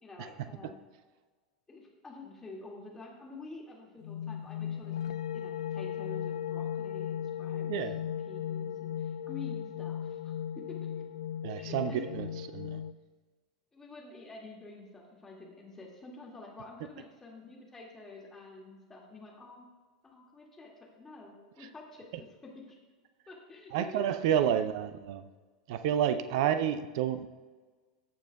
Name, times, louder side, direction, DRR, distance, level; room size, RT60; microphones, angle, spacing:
voice 1, 0.0-0.7 1.7-5.0 5.3-11.0 11.6-12.2 13.7-19.6 20.0-22.8 23.3-24.7, left 3 dB, 15° left, -2 dB, 2.2 m, -48 dB
sound 1, 4.0-12.9, left 9 dB, 65° left, 0.4 m, -37 dB
voice 2, 11.4-12.3 12.5-12.8 23.7-25.2 25.7-27.3, right 9 dB, 55° right, 11 dB, 0.5 m, -29 dB
16.5 x 6.9 x 2.3 m, 1.4 s
figure-of-eight pair, 85°, 3 cm